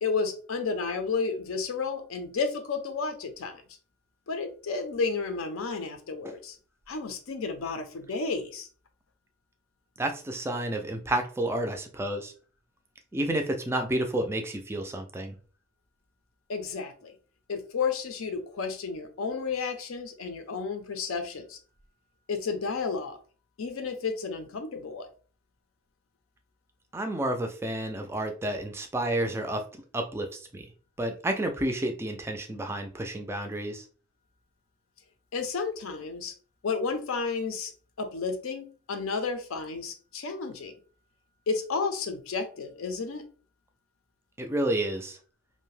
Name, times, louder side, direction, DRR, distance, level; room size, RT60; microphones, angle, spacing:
voice 1, 0.0-3.6 4.3-6.6 6.9-8.7 16.5-17.1 17.5-21.6 22.3-23.2 23.6-25.1 35.3-36.3 36.6-37.7 38.0-40.7 41.5-43.2, left 4 dB, 80° left, 6 dB, 0.5 m, -32 dB
voice 2, 10.0-12.3 13.1-15.3 26.9-29.6 29.9-30.7 31.0-33.8 44.4-45.2, right 1 dB, 10° right, 5 dB, 0.3 m, -30 dB
2.6 x 2.1 x 3.1 m, 0.39 s
head